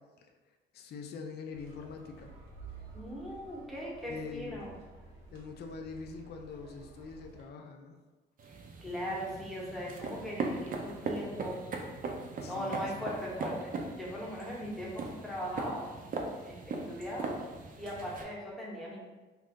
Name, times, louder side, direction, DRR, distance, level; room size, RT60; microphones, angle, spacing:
voice 1, 0.7-2.3 4.1-4.7 5.3-8.0 12.4-13.0, left 4 dB, 55° left, 4 dB, 0.4 m, -44 dB
sound 1, 1.5-7.4, right 4 dB, 90° right, 0.8 m, -52 dB
voice 2, 2.9-4.7 8.5-11.6 12.5-15.9 16.4-17.4 17.8-19.1, equal, ahead, -5 dB, 0.9 m, -39 dB
sound 2, 8.4-18.2, right 3 dB, 45° right, 0.5 m, -39 dB
2.6 x 2.3 x 3.5 m, 1.2 s
cardioid pair, 90°, 20 cm